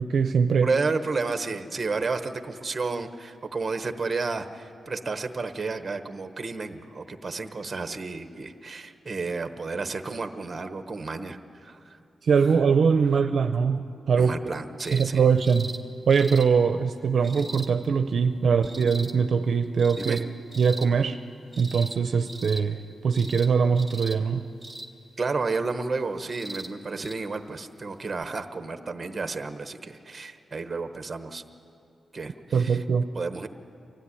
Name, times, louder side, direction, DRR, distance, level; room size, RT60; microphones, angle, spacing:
voice 1, 0.0-0.7 12.2-14.4 14.9-15.7 16.1-20.2 20.6-21.2 21.6-24.5 32.5-33.1, right 6 dB, 55° right, 8 dB, 0.6 m, -22 dB
voice 2, 0.6-12.0 14.2-15.3 20.0-20.2 25.2-31.4 32.1-32.8 33.1-33.5, right 4 dB, 25° right, 8 dB, 1.1 m, -31 dB
sound 1, 14.8-15.1 15.4-15.8 16.1-16.5 17.2-17.7 18.6-19.1 19.8-20.2 20.5-20.9 21.5-22.0 22.3-22.6 23.1-23.5 23.8-24.2 24.6-24.9 26.2-26.7 27.0-27.2 28.2-28.3, right 1 dB, ahead, 1.4 m, -39 dB
24.0 x 16.0 x 9.9 m, 2.7 s
wide cardioid pair, 160°, 0 cm